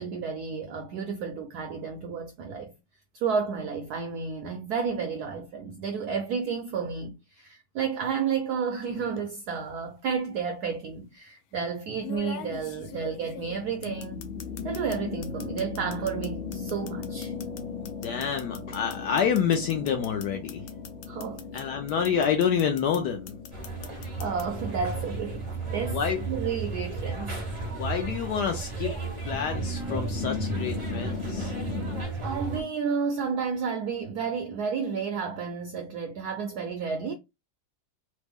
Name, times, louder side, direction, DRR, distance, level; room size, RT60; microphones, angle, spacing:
voice 1, 0.0-2.7 3.1-14.3 14.6-17.3 21.1-21.7 24.2-26.0 26.3-27.4 32.2-37.1, right 6 dB, 75° right, 0.9 m, -31 dB
sound 1, 8.8-9.2 10.4-10.5 12.0-15.0 15.2-21.6 21.9-23.0 23.3-24.4, left 10 dB, 90° left, 1.4 m, -43 dB
sound 2, 12.4-32.0, left 5 dB, 45° left, 0.7 m, -39 dB
voice 2, 17.8-20.6 21.5-23.4 25.8-26.2 27.6-28.9 29.2-31.5, left 7 dB, 75° left, 1.0 m, -28 dB
sound 3, 23.5-32.6, right 3 dB, 50° right, 0.3 m, -34 dB
3.3 x 2.0 x 3.4 m
omnidirectional pair, 2.2 m